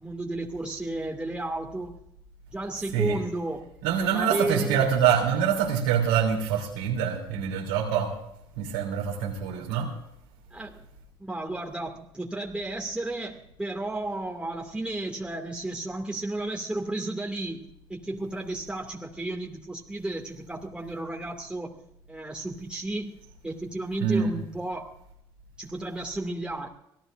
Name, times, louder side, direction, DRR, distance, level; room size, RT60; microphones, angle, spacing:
voice 1, 0.0-2.0 2.5-3.7 4.1-4.9 10.5-10.8 11.2-21.7 22.1-23.2 23.4-24.9 25.6-26.7, right 2 dB, 10° right, -1 dB, 2.4 m, -33 dB
voice 2, 3.8-8.1 8.6-9.9 24.0-24.3, right 8 dB, 85° right, -2 dB, 3.2 m, -25 dB
25.5 x 16.5 x 2.6 m, 0.77 s
hypercardioid pair, 65°, 11 cm